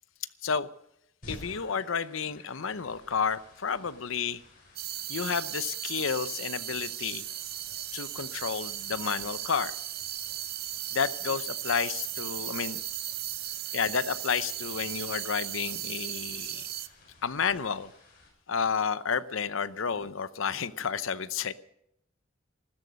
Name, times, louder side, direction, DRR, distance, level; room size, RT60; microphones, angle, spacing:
sound 1, 1.2-18.3, left 1 dB, 45° left, 7.3 m, -54 dB
voice 1, 1.3-4.4 5.1-7.2 7.9-9.7 10.9-12.8 13.7-16.6 17.2-17.9 18.5-21.5, left 6 dB, 80° left, 15 dB, 0.7 m, -31 dB
sound 2, 4.8-16.9, right 12 dB, 50° right, 0.7 m, -36 dB
15.0 x 13.5 x 6.3 m, 0.78 s
head